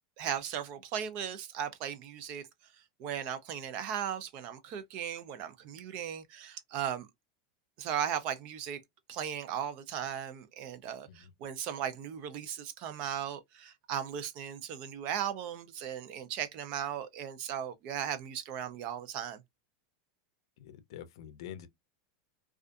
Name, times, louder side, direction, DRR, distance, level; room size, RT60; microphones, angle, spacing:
voice 1, 0.2-2.5 3.0-7.1 7.8-8.8 9.1-19.4, right 9 dB, 40° right, 0.5 m, -37 dB
voice 2, 20.6-21.7, left 10 dB, 70° left, 0.5 m, -46 dB
2.5 x 2.4 x 2.3 m
supercardioid pair, 155°, 3 cm